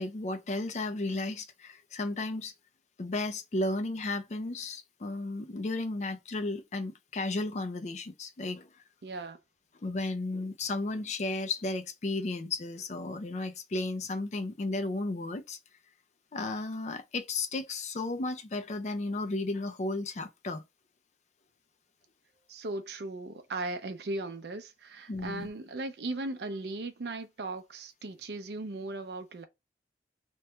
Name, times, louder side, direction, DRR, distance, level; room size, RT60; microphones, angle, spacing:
voice 1, 0.0-2.5 3.0-8.7 9.8-15.6 16.3-20.6 25.1-25.5, left 2 dB, 40° left, 0.4 m, -34 dB
voice 2, 9.0-9.4 22.5-29.5, right 2 dB, 65° right, 0.5 m, -37 dB
3.0 x 2.2 x 3.0 m
head